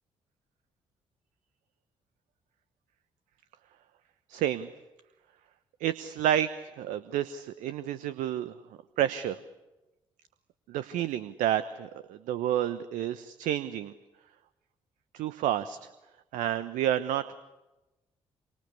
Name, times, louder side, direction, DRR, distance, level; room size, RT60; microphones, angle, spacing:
voice 1, 4.3-4.7 5.8-6.5 6.8-8.5 9.0-9.4 10.7-13.9 15.1-15.8 16.3-17.2, right 11 dB, 70° right, 12 dB, 1.1 m, -29 dB
28.0 x 24.5 x 8.4 m, 1.0 s
hypercardioid pair, 45°, 14 cm